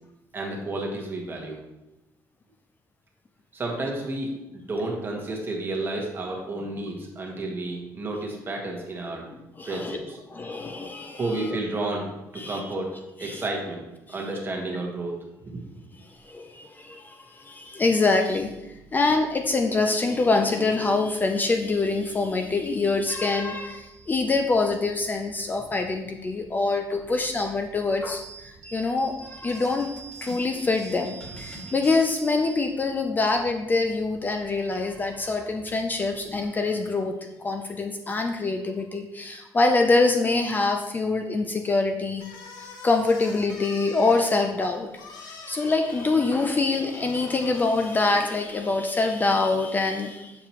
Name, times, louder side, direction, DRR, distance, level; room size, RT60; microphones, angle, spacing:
voice 1, 0.3-1.6 3.5-9.3 9.6-10.2 11.2-12.1 12.3-13.8 14.1-15.2, right 2 dB, 30° right, 0 dB, 1.4 m, -31 dB
voice 2, 9.6-10.0 10.3-11.6 12.4-12.6 13.2-13.5 14.1-14.2 16.1-18.5 18.9-42.2 42.6-44.9 45.2-50.3, left 3 dB, 25° left, 4 dB, 0.4 m, -25 dB
sound 1, 18.3-36.5, right 5 dB, 50° right, 1.5 m, -48 dB
sound 2, 29.4-32.9, equal, 10° left, 2.0 m, -46 dB
sound 3, 42.1-48.8, left 4 dB, 70° left, 1.0 m, -45 dB
7.1 x 4.7 x 3.0 m, 0.97 s
cardioid pair, 120°, 7 cm